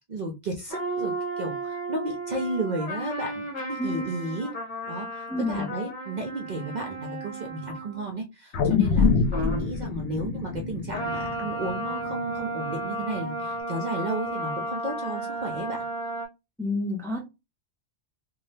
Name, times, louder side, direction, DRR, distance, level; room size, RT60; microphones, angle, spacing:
voice 1, 0.0-4.5 4.9-9.1 9.4-15.8, right 2 dB, 50° right, 2 dB, 0.6 m, -33 dB
sound 1, 0.7-8.2 9.3-9.7 10.9-16.3, right 1 dB, 45° left, 1.1 m, -33 dB
voice 2, 5.3-5.7 9.4-9.5 16.6-17.2, left 2 dB, 5° left, 1 dB, 0.5 m, -29 dB
sound 2, 8.5-13.0 13.5-13.6, left 5 dB, 80° left, 0.9 m, -26 dB
2.7 x 2.3 x 3.2 m, 0.25 s
omnidirectional pair, 1.2 m